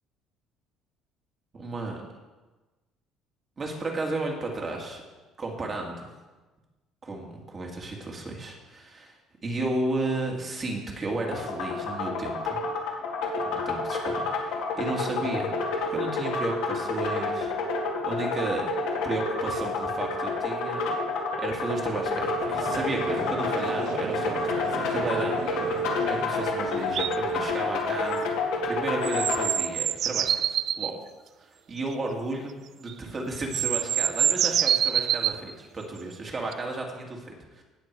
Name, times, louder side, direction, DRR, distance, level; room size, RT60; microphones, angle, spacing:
voice 1, 1.5-2.0 3.6-5.0 5.4-6.1 7.0-12.6 13.4-15.5 15.9-17.5 18.0-18.7 19.0-20.8 21.4-25.7 26.1-28.3 28.6-30.9 31.4-37.6, right 2 dB, 25° right, 0 dB, 2.2 m, -33 dB
sound 1, 11.2-29.5, left 3 dB, 85° left, 2.2 m, -29 dB
Conversation / Crowd, 22.0-27.3, right 6 dB, 65° right, 1.4 m, -36 dB
sound 2, 26.9-27.1 29.0-30.9 32.9-33.0 33.4-35.4 36.5-36.6, right 10 dB, 50° right, 0.4 m, -25 dB
17.0 x 6.9 x 4.8 m, 1.2 s
cardioid pair, 145°, 0 cm